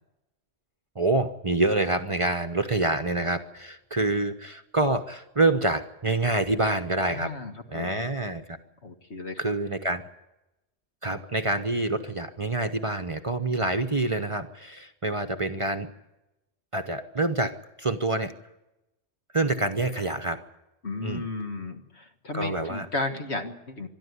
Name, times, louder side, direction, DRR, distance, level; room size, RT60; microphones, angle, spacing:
voice 1, 0.9-7.3 7.7-8.6 9.4-10.0 11.0-15.9 16.7-18.3 19.3-20.4 21.0-21.3 22.3-22.9, right 2 dB, 30° right, 7 dB, 0.9 m, -27 dB
voice 2, 7.1-8.1 8.8-9.5 20.8-23.9, left 3 dB, 65° left, 6 dB, 1.9 m, -34 dB
22.5 x 13.0 x 9.6 m, 0.95 s
omnidirectional pair, 1.2 m